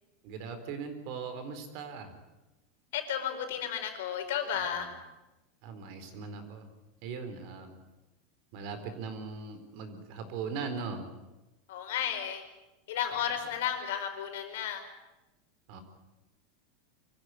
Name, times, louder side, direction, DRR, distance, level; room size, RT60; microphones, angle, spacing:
voice 1, 0.2-2.1 5.6-6.7 7.0-7.7 8.5-11.0 15.7-15.8, right 5 dB, 55° right, 8 dB, 4.3 m, -39 dB
voice 2, 2.9-4.9 11.7-12.4 12.9-14.8, left 9 dB, 80° left, 5 dB, 4.8 m, -33 dB
25.5 x 15.0 x 9.8 m, 1.0 s
supercardioid pair, 150°, 0 cm